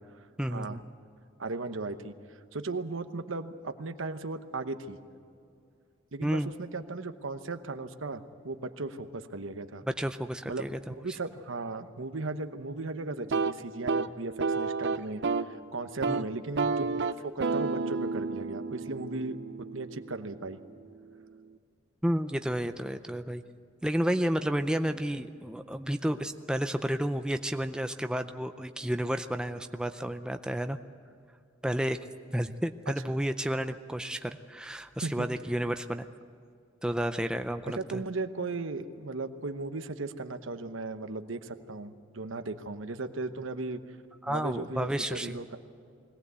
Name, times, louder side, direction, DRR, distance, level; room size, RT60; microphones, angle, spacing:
voice 1, 0.4-0.8 6.2-6.5 10.0-10.9 16.1-16.3 22.0-23.4 23.8-30.8 31.6-32.0 32.3-36.1 36.8-38.0 44.2-45.4, equal, 5° right, 8 dB, 0.5 m, -31 dB
voice 2, 1.4-5.0 6.1-9.8 10.5-19.4 19.7-20.6 35.0-35.3 37.7-43.8 44.3-45.6, right 3 dB, 75° right, 9 dB, 1.0 m, -37 dB
sound 1, 13.2-15.6 15.9-16.2 16.6-20.4, right 4 dB, 55° right, 0.6 m, -31 dB
21.5 x 18.0 x 8.1 m, 2.4 s
head